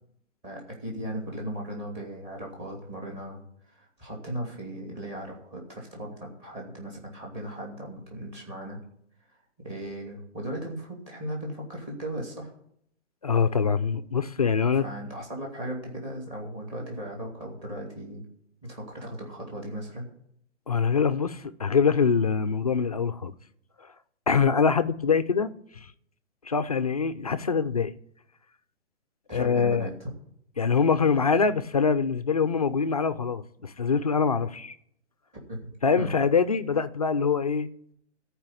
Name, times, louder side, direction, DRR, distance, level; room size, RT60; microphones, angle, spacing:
voice 1, 0.4-3.4 3.7-8.8 9.6-12.5 14.8-18.2 18.6-20.1 29.3-30.1 35.3-36.1, right 1 dB, 20° right, 2.8 m, -37 dB
voice 2, 13.2-14.9 20.7-23.3 23.8-23.9 24.3-25.9 26.4-27.9 29.3-29.9 30.6-34.8 35.8-37.7, left 5 dB, 35° left, 0.4 m, -24 dB
14.0 x 4.8 x 9.0 m
hypercardioid pair, 170°, 36 cm